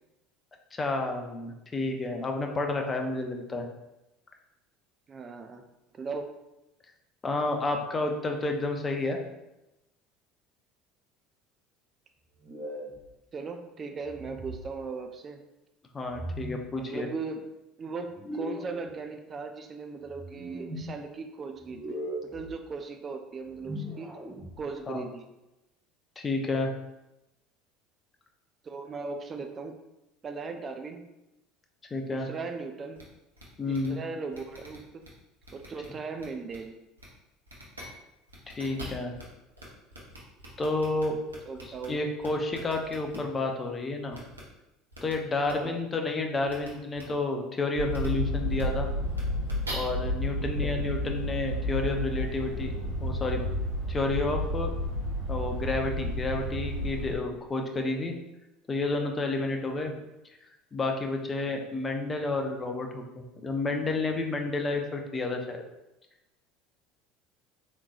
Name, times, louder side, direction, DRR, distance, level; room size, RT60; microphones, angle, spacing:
voice 1, 0.7-3.7 7.2-9.2 15.9-17.1 24.9-25.0 26.2-26.7 31.9-32.3 33.6-34.0 38.5-39.1 40.6-41.2 41.6-44.2 45.0-48.9 49.7-52.7 53.0-53.5 53.9-54.7 55.3-58.1 58.7-59.9 60.7-65.6, left 2 dB, 25° left, 3 dB, 0.5 m, -30 dB
voice 2, 5.1-5.6 5.9-6.3 13.3-15.4 16.7-17.5 17.8-22.0 22.3-24.1 24.6-25.2 28.6-29.8 30.2-31.0 32.1-33.0 33.7-35.0 35.5-36.8 41.4-42.0 45.5-45.8 50.4-50.8 59.8-59.9, right 4 dB, 30° right, 6 dB, 0.3 m, -38 dB
sound 1, 12.4-13.0 14.0-14.7 16.1-16.7 18.1-18.8 20.1-20.9 21.6-22.5 23.4-24.7, equal, 10° right, 0.9 m, -38 dB
sound 2, 33.0-33.1 33.4-33.5 33.7-33.9 34.3-35.1 35.4-35.9 36.2-36.6 37.0-37.1 37.5-37.9 38.3-39.2 39.6-39.7 39.9-41.9 42.2-43.2 44.1-44.4 44.9-45.1 45.4-45.5 46.5-46.7 46.9-47.0 47.9-48.1 48.5-48.6 49.1-49.7, right 1 dB, 80° right, 0.7 m, -44 dB
sound 3, 47.7-57.1, left 1 dB, 65° left, 0.9 m, -31 dB
3.6 x 3.0 x 2.4 m, 0.95 s
figure-of-eight pair, 65°, 0 cm